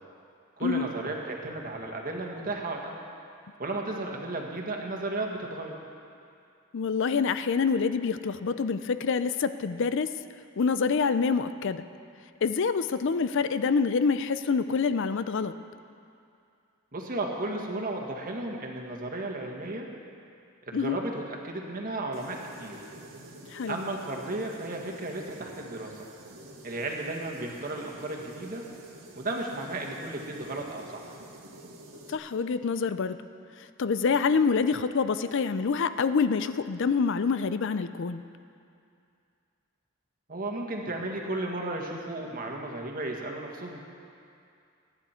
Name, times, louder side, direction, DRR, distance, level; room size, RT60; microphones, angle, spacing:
voice 1, 0.6-2.9 3.6-5.8 16.9-19.9 20.7-22.8 23.7-25.9 26.6-28.6 29.2-31.1 40.3-43.8, right 2 dB, 40° right, 1 dB, 1.6 m, -34 dB
voice 2, 6.7-10.1 10.6-11.8 12.4-15.5 20.7-21.0 23.5-23.8 32.1-33.2 33.8-38.2, left 5 dB, 55° left, 12 dB, 0.5 m, -26 dB
sound 1, 22.1-32.2, right 1 dB, 75° right, 1.8 m, -48 dB
23.0 x 9.7 x 4.4 m, 2.5 s
head